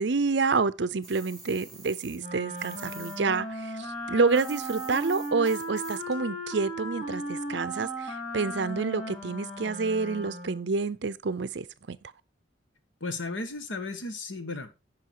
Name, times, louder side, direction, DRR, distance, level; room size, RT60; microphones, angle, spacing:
voice 1, 0.0-12.0, right 4 dB, 60° right, 0.6 m, -28 dB
sound 1, 1.0-3.2 3.5-6.2, right 2 dB, ahead, 2.6 m, -47 dB
Wind instrument woodwind instrument, 2.2-10.7, equal, 40° left, 3.4 m, -36 dB
voice 2, 13.0-14.7, left 3 dB, 75° left, 1.6 m, -34 dB
9.6 x 5.7 x 4.6 m
head